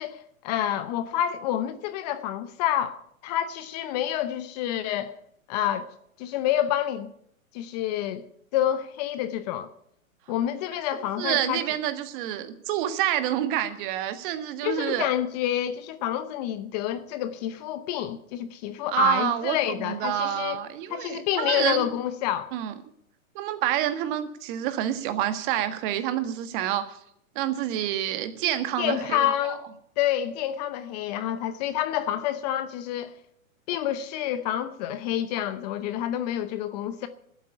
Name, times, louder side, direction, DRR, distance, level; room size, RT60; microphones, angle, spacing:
voice 1, 0.0-5.2 5.5-5.9 6.2-7.1 7.5-8.2 8.5-9.7 10.3-11.6 14.6-20.6 20.9-22.5 28.8-29.7 30.0-33.1 33.7-37.1, left 11 dB, 30° left, 0.7 m, -28 dB
voice 2, 11.2-15.1 18.9-21.9 22.5-22.7 23.3-27.0 27.3-29.5, right 12 dB, 35° right, 1.6 m, -28 dB
12.0 x 8.2 x 9.8 m
hypercardioid pair, 140°, 42 cm